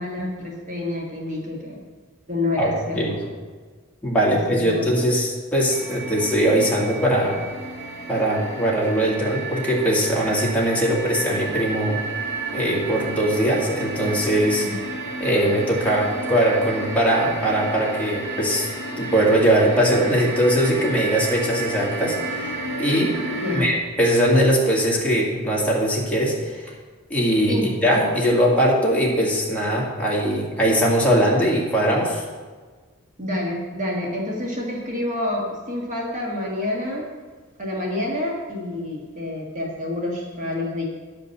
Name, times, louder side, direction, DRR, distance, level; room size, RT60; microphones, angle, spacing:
voice 1, 0.0-1.8 2.3-3.2 4.3-4.4 4.6-4.9 14.6-14.8 23.4-23.7 27.5-27.7 33.2-37.1 37.6-40.8, left 1 dB, 35° right, -3 dB, 1.7 m, -28 dB
voice 2, 2.6-3.2 4.0-7.4 8.1-12.0 12.5-14.7 15.2-18.7 19.0-22.5 22.8-23.2 23.5-26.7 27.1-32.2, equal, 5° left, -4 dB, 2.1 m, -21 dB
sound 1, 5.7-23.6, right 3 dB, 60° right, 2.2 m, -31 dB
10.5 x 5.3 x 7.0 m, 1.4 s
head